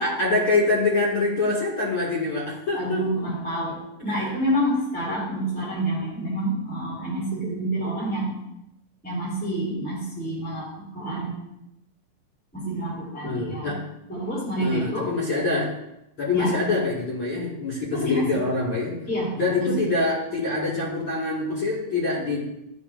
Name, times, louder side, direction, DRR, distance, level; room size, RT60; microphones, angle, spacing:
voice 1, 0.0-3.0 4.1-4.3 13.2-13.8 14.6-15.7 16.2-19.0 19.4-22.4, left 3 dB, 40° left, -7 dB, 2.8 m, -25 dB
voice 2, 2.7-8.3 9.0-11.3 12.5-13.7 14.1-15.1 16.3-16.5 18.0-18.4 19.1-19.9, right 1 dB, 5° left, -7 dB, 1.9 m, -28 dB
12.5 x 5.1 x 2.7 m, 0.85 s
omnidirectional pair, 4.0 m